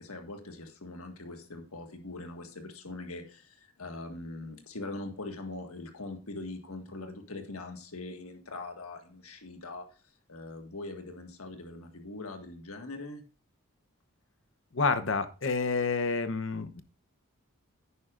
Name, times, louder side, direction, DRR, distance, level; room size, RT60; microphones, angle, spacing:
voice 1, 0.0-9.9 10.3-13.2, left 2 dB, 90° left, 4 dB, 1.7 m, -42 dB
voice 2, 14.7-16.8, left 4 dB, 60° left, 10 dB, 0.9 m, -29 dB
9.9 x 9.7 x 2.5 m, 0.37 s
head